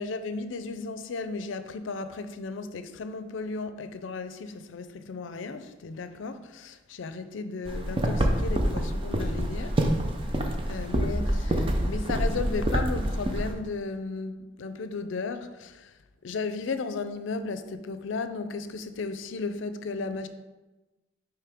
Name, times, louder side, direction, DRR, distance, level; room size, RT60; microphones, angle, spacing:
voice 1, 0.0-9.8 10.7-15.9 16.2-20.3, left 4 dB, 80° left, 0.4 m, -35 dB
sound 1, 7.7-13.5, right 1 dB, 25° right, 0.6 m, -27 dB
9.4 x 3.2 x 3.5 m
head